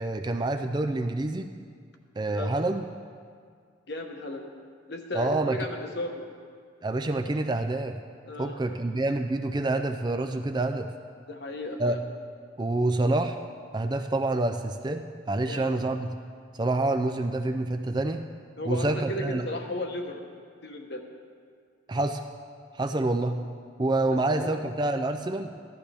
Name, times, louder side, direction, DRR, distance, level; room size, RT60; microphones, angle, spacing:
voice 1, 0.0-1.5 2.2-2.9 5.1-5.6 6.8-8.0 8.4-10.9 11.8-12.0 12.6-13.4 13.7-16.1 16.5-18.3 18.7-19.4 21.9-22.2 22.7-23.4 23.8-25.5, right 2 dB, 20° right, 7 dB, 0.3 m, -27 dB
voice 2, 3.9-4.5 4.9-6.3 8.3-8.6 11.3-12.0 15.5-15.8 18.6-20.3 20.6-21.0 24.3-24.6, left 1 dB, 55° left, 3 dB, 1.1 m, -35 dB
15.0 x 12.0 x 3.4 m, 2.1 s
head